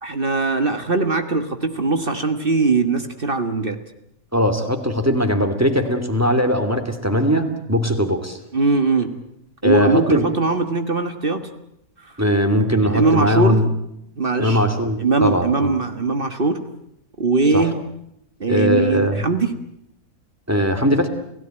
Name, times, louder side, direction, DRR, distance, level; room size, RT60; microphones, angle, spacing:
voice 1, 0.0-3.8 8.5-9.1 9.6-11.5 12.0-12.2 12.8-13.6 14.2-14.6 15.0-16.6 17.2-17.8 18.4-19.6, right 3 dB, 40° right, 8 dB, 1.7 m, -20 dB
voice 2, 4.3-8.4 9.6-10.3 12.2-13.7 14.4-15.8 17.5-17.7 18.5-19.2 20.5-21.1, equal, 10° right, 7 dB, 2.6 m, -20 dB
29.5 x 17.0 x 9.0 m, 0.78 s
omnidirectional pair, 1.6 m